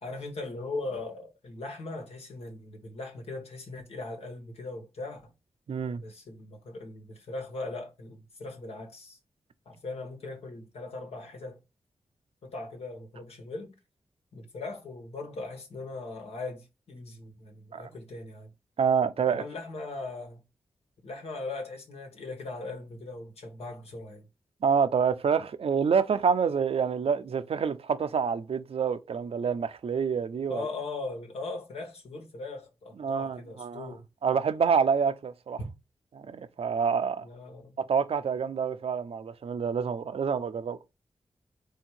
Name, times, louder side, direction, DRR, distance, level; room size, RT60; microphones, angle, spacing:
voice 1, 0.0-5.3 5.9-9.2 9.6-11.6 12.4-13.7 14.3-18.5 19.3-20.4 21.0-24.3 30.5-34.0 35.6-35.7 37.2-37.7, left 3 dB, 80° left, 1.4 m, -39 dB
voice 2, 5.7-6.0 17.7-17.9 18.8-19.4 24.6-30.6 33.0-33.9 34.2-35.6 36.1-37.3 37.8-40.8, right 6 dB, 70° right, 0.6 m, -27 dB
3.6 x 2.8 x 4.4 m
cardioid pair, 50°, 10 cm